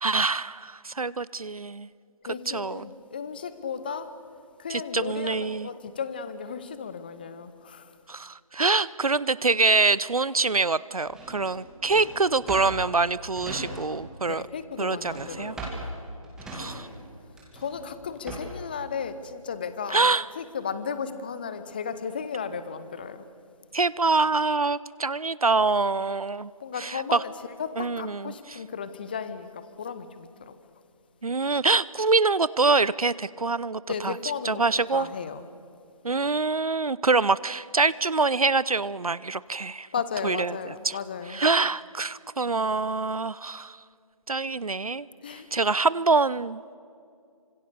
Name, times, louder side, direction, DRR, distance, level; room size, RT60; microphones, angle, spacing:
voice 1, 0.0-1.9 2.5-2.8 4.7-5.7 8.1-14.4 14.8-15.5 16.5-16.9 19.9-20.2 23.7-26.5 26.8-27.2 27.8-28.6 31.2-34.1 34.4-35.1 36.0-39.9 40.2-40.6 40.8-41.0 41.3-43.8 44.3-45.1 45.3-46.8, right 3 dB, 70° right, 19 dB, 0.6 m, -25 dB
voice 2, 2.2-4.2 4.6-8.0 14.3-15.6 16.7-16.9 17.5-23.3 26.6-27.3 27.6-30.5 33.9-34.6 34.9-35.5 39.9-41.4 45.2-45.5, left 6 dB, 15° left, 13 dB, 0.7 m, -35 dB
Drawer open or close, 11.1-14.2 14.4-18.7, right 2 dB, 5° right, 2.2 m, -39 dB
28.0 x 25.5 x 6.7 m, 2.4 s
figure-of-eight pair, 155°, 19 cm